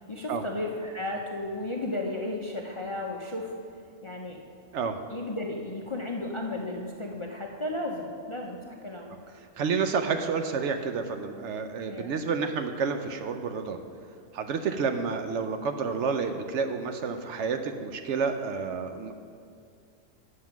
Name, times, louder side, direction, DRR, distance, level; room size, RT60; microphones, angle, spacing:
voice 1, 0.0-3.6 4.0-4.4 5.1-9.3 11.9-12.1, left 2 dB, 35° left, 0 dB, 0.5 m, -34 dB
voice 2, 9.6-13.8 14.3-19.1, right 5 dB, 70° right, 6 dB, 0.8 m, -29 dB
9.2 x 6.5 x 5.9 m, 2.4 s
omnidirectional pair, 1.4 m